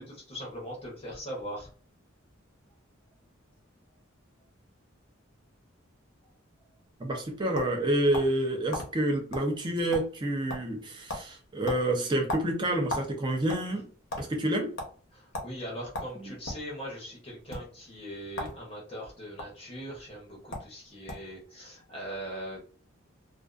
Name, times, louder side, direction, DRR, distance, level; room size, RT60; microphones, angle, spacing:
voice 1, 0.0-1.7 15.1-22.6, equal, 25° left, -3 dB, 0.7 m, -40 dB
sound 1, 7.0-8.4 8.7-8.9 9.3-9.5 9.8-10.2 10.5-10.8 11.1-11.3 11.6-13.1 13.4-14.2 14.8-14.9 15.3-15.5 15.9-16.6 17.4-17.6 18.3-18.6 18.9-19.4 20.2-20.3 20.5-20.7 21.1-21.3, left 1 dB, 60° left, 0.7 m, -36 dB
voice 2, 7.0-13.9 14.2-14.7 16.2-16.3, right 1 dB, 20° right, 2 dB, 0.4 m, -28 dB
2.4 x 2.3 x 2.3 m, 0.42 s
head